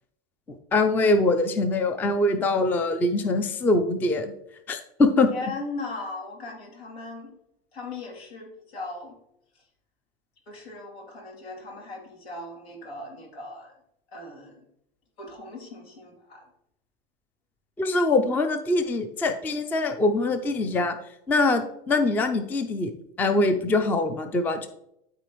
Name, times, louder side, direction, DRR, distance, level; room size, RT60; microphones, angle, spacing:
voice 1, 0.7-4.3 4.7-5.3 17.8-21.0 21.3-22.9 23.2-24.7, left 2 dB, 5° left, 8 dB, 0.3 m, -23 dB
voice 2, 5.3-7.3 7.7-9.2 10.5-13.7 14.1-14.6 15.2-16.4, left 3 dB, 90° left, 0 dB, 3.0 m, -38 dB
12.0 x 4.1 x 3.1 m, 0.78 s
supercardioid pair, 135°, 30 cm